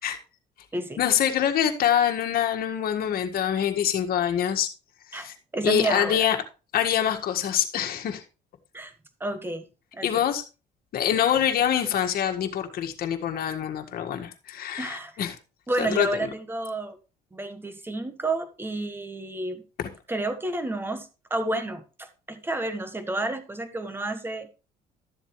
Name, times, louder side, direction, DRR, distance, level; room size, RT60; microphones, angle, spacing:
voice 1, 1.0-4.7 5.1-5.4 5.6-6.4 6.7-8.2 10.0-10.4 10.9-15.4 15.8-16.3 19.8-19.9, left 9 dB, 60° left, 1.7 m, -25 dB
voice 2, 5.1-6.2 8.7-8.9 9.2-9.6 9.9-10.3 14.8-15.1 15.7-17.0 17.3-19.6 20.1-24.5, right 2 dB, 15° right, 1.5 m, -30 dB
12.5 x 7.4 x 3.2 m
cardioid pair, 110°, 17 cm